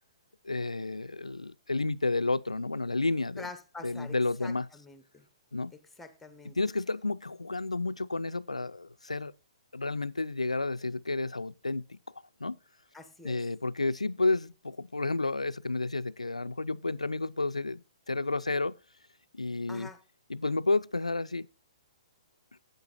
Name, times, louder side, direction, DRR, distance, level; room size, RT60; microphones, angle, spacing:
voice 1, 0.4-3.5 3.8-4.7 5.5-5.7 6.4-9.3 9.7-12.0 12.4-12.6 13.2-18.8 19.3-19.9 20.3-21.5, left 3 dB, 85° left, 0.4 m, -31 dB
voice 2, 3.4-4.1 4.4-5.2 6.0-6.6 12.9-13.4 19.7-20.0, left 3 dB, 5° left, 1.2 m, -46 dB
11.5 x 8.9 x 2.6 m
figure-of-eight pair, 125°, 3 cm